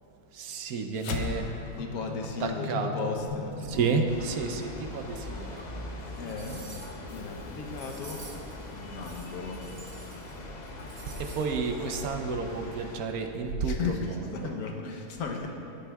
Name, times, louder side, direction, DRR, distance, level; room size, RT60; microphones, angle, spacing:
voice 1, 0.3-1.5 2.4-3.2 3.6-5.6 11.1-14.5, right 4 dB, 70° right, 5 dB, 1.0 m, -31 dB
sound 1, 1.0-5.6, left 5 dB, 85° left, 1.3 m, -38 dB
voice 2, 1.8-4.0 6.2-6.7 7.1-8.2 8.7-9.6 13.6-15.5, left 4 dB, 65° left, 2 dB, 1.2 m, -36 dB
sound 2, 4.1-13.0, left 2 dB, 45° left, 0.5 m, -41 dB
sound 3, 5.5-5.6 6.1-7.1 7.7-8.5 9.0-10.4 10.6-11.5 11.8-11.9, right 2 dB, 35° right, 0.9 m, -49 dB
13.0 x 8.9 x 2.3 m, 2.9 s
omnidirectional pair, 1.8 m